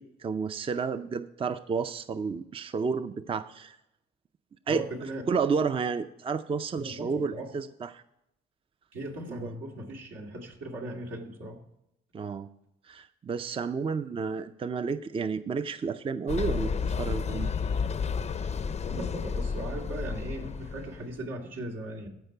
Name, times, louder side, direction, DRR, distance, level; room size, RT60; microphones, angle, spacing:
voice 1, 0.0-3.8 4.7-4.8 5.3-8.0 9.3-9.5 12.1-12.5 12.9-16.7 17.0-17.5 18.4-18.5, right 5 dB, 25° right, 11 dB, 0.5 m, -31 dB
voice 2, 4.7-5.2 6.8-7.5 8.9-11.6 18.8-22.1, right 1 dB, 85° right, 0 dB, 2.2 m, -38 dB
sound 1, 16.3-21.1, left 5 dB, 35° left, 0.5 m, -31 dB
14.5 x 5.2 x 4.5 m, 0.83 s
cardioid pair, 90°, 20 cm